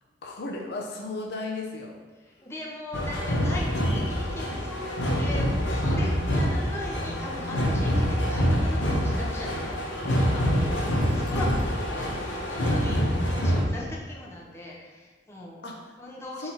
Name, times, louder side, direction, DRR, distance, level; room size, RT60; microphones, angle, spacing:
voice 1, 0.2-2.0 7.1-8.0 12.8-13.4 15.6-15.9 16.4-16.5, left 2 dB, 60° left, 1 dB, 0.5 m, -36 dB
voice 2, 2.1-9.8 10.1-10.8 11.1-12.1 12.5-13.1 13.3-15.6 16.0-16.5, left 1 dB, 15° left, -4 dB, 0.6 m, -39 dB
sound 1, 2.9-13.6, equal, 90° left, 0.8 m, -26 dB
3.8 x 2.9 x 4.1 m, 1.3 s
head